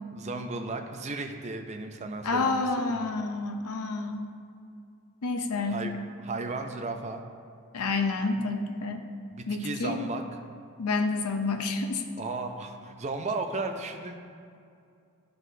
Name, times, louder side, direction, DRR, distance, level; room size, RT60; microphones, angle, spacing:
voice 1, 0.1-3.0 5.7-5.9 6.2-7.2 9.3-10.2 12.2-14.1, right 3 dB, 30° right, 5 dB, 0.4 m, -35 dB
voice 2, 2.2-4.4 5.2-5.9 7.7-9.0 9.5-10.0 10.8-12.0, left 3 dB, 90° left, 6 dB, 0.6 m, -29 dB
10.5 x 3.9 x 2.7 m, 2.4 s
head